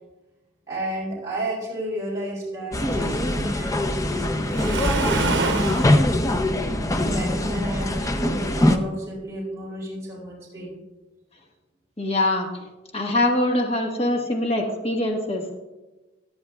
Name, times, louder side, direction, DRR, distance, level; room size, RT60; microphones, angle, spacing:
voice 1, 0.7-6.2 7.0-10.8, right 1 dB, 15° right, -6 dB, 3.9 m, -33 dB
sound 1, 2.7-8.8, left 1 dB, 20° left, 0.6 m, -23 dB
Waves surf, 4.5-6.0, right 3 dB, 70° right, 0.8 m, -25 dB
voice 2, 12.0-12.6 12.9-15.5, left 1 dB, 35° left, 1 dB, 1.4 m, -23 dB
17.5 x 10.5 x 2.3 m, 1.1 s
head